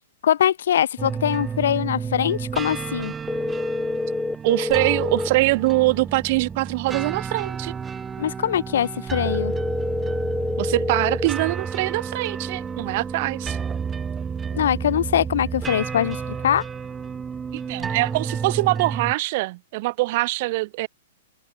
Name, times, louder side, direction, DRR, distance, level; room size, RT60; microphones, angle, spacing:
voice 1, 0.2-3.1 8.2-9.5 14.5-16.6, left 10 dB, 75° left, 1.4 m, -22 dB
sound 1, 1.0-19.1, right 6 dB, 15° right, 0.9 m, -31 dB
sound 2, 3.3-5.3 9.3-11.3, left 3 dB, 5° left, 2.8 m, -27 dB
voice 2, 4.4-7.7 10.6-13.6 17.5-20.9, right 21 dB, 45° right, 2.0 m, -23 dB
hypercardioid pair, 145°, 0 cm